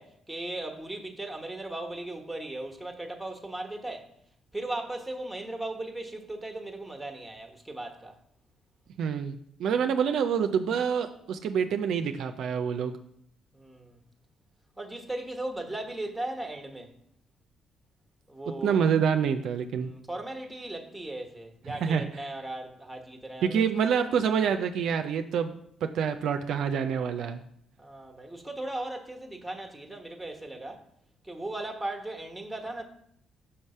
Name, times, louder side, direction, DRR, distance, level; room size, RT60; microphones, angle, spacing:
voice 1, 0.0-4.1 4.5-8.2 13.5-14.0 14.8-16.9 18.3-18.8 19.8-23.7 27.8-30.8 31.2-32.8, right 2 dB, 5° right, 1.2 m, -37 dB
voice 2, 9.0-13.0 18.6-19.9 21.7-22.1 23.4-25.5 25.8-27.4, right 7 dB, 70° right, 0.4 m, -27 dB
5.7 x 3.2 x 5.4 m
supercardioid pair, 55°, 0 cm